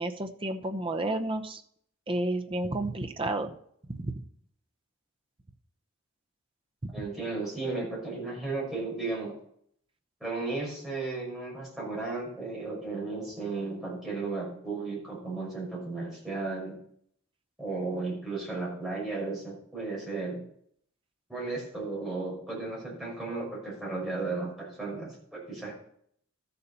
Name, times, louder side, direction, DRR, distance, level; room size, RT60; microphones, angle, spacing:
voice 1, 0.0-1.6 2.1-3.6 3.9-4.1 6.8-6.9, right 1 dB, 25° right, 6 dB, 0.8 m, -31 dB
voice 2, 6.9-9.3 10.2-16.7 17.6-20.4 21.3-25.7, right 3 dB, ahead, -5 dB, 5.6 m, -34 dB
13.0 x 7.0 x 5.4 m, 0.66 s
head